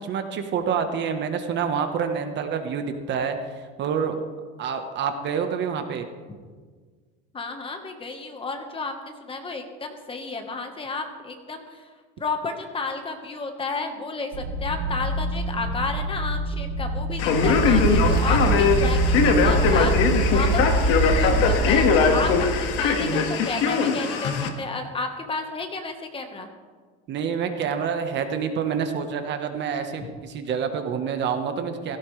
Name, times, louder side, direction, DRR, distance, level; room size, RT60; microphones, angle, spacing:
voice 1, 0.0-4.2 4.6-6.1 27.1-32.0, right 6 dB, 40° right, 7 dB, 1.2 m, -27 dB
voice 2, 7.3-11.8 12.2-26.5, left 3 dB, 20° left, 5 dB, 1.3 m, -32 dB
sound 1, 14.3-21.4, equal, 85° right, 4.5 m, -29 dB
Male speech man speaking, 17.2-24.5, left 5 dB, 50° left, 1.8 m, -21 dB
sound 2, 17.4-23.0, right 3 dB, 15° right, 2.7 m, -24 dB
16.5 x 16.0 x 3.3 m, 1.5 s
cardioid pair, 150°, 29 cm